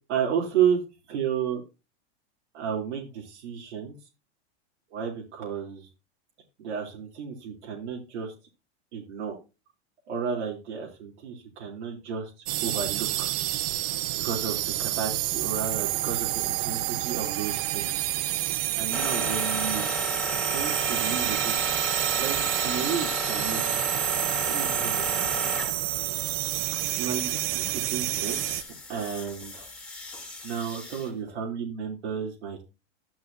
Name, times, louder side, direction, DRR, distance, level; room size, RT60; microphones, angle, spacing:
voice 1, 0.1-0.8 1.1-1.6 2.5-4.0 4.9-5.9 6.6-8.3 8.9-9.4 10.1-13.3 14.1-17.9 18.7-19.9 20.5-21.7 22.2-23.8 24.4-25.3 27.0-29.7 30.4-32.6, right 7 dB, 85° right, -2 dB, 3.8 m, -32 dB
sound 1, 12.5-28.6, right 16 dB, 40° right, 0.8 m, -28 dB
sound 2, 18.9-25.9 28.1-31.1, left 1 dB, 5° left, 2.6 m, -34 dB
12.0 x 11.5 x 2.8 m, 0.29 s
supercardioid pair, 135°, 34 cm